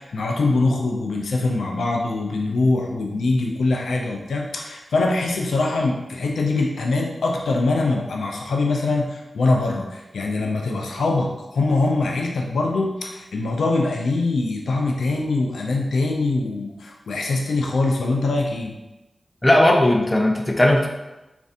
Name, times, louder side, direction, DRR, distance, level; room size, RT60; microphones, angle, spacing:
voice 1, 0.0-18.7, left 3 dB, 90° left, 0 dB, 0.3 m, -23 dB
voice 2, 19.4-20.9, left 1 dB, 25° left, 2 dB, 0.5 m, -17 dB
3.1 x 2.5 x 2.7 m, 1.0 s
cardioid pair, 40°, 0 cm